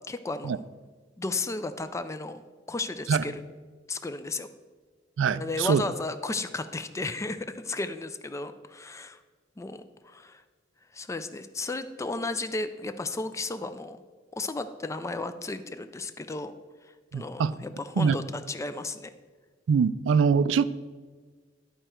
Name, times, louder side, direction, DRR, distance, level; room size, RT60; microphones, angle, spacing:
voice 1, 0.1-0.6 1.2-2.4 2.7-3.4 3.9-4.5 5.3-9.2 9.6-10.4 10.9-14.0 14.3-16.5 16.8-19.1, left 3 dB, 15° left, 0.3 m, -34 dB
voice 2, 5.2-5.8 17.1-17.5 18.0-18.2 19.7-20.6, right 6 dB, 90° right, 0.3 m, -23 dB
11.0 x 4.4 x 4.4 m
head